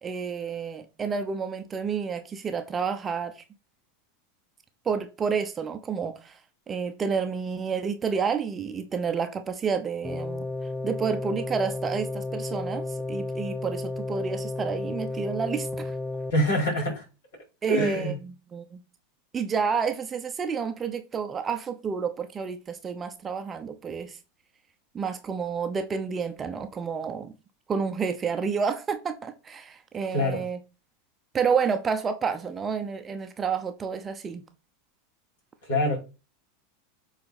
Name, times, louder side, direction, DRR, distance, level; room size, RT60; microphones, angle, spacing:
voice 1, 0.0-3.4 4.8-6.4 6.7-10.5 10.8-15.9 17.6-18.8 19.3-24.2 24.9-27.3 27.7-30.6 31.3-34.4, right 6 dB, 20° right, 0.9 m, -30 dB
sound 1, 10.0-16.3, left 2 dB, 5° left, 0.6 m, -33 dB
voice 2, 16.3-17.0 17.7-18.1 30.1-30.4 35.6-36.0, left 1 dB, 60° left, 4.6 m, -25 dB
7.7 x 4.1 x 4.2 m
figure-of-eight pair, 85°, 0 cm